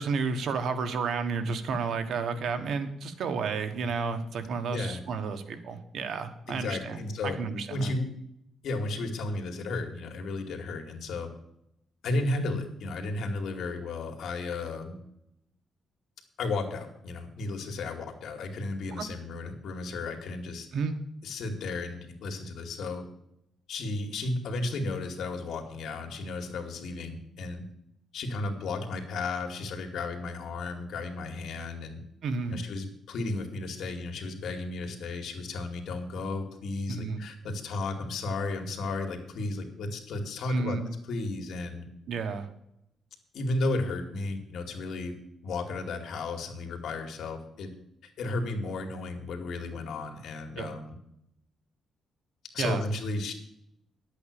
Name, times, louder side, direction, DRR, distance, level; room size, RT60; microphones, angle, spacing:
voice 1, 0.0-7.0 7.2-7.9 19.0-19.1 20.7-20.9 32.2-32.6 36.9-37.2 40.5-40.9 42.1-42.5 50.6-50.7 52.6-52.8, right 5 dB, 65° right, 7 dB, 1.4 m, -31 dB
voice 2, 4.7-5.0 6.5-8.1 8.6-11.3 12.0-15.0 16.4-20.7 21.2-23.0 23.7-27.6 28.1-32.0 32.5-40.8 41.0-41.9 43.3-45.1 45.4-47.7 48.2-51.0 52.5-53.3, left 2 dB, 70° left, 3 dB, 2.4 m, -34 dB
11.0 x 8.4 x 6.7 m, 0.79 s
cardioid pair, 140°, 0 cm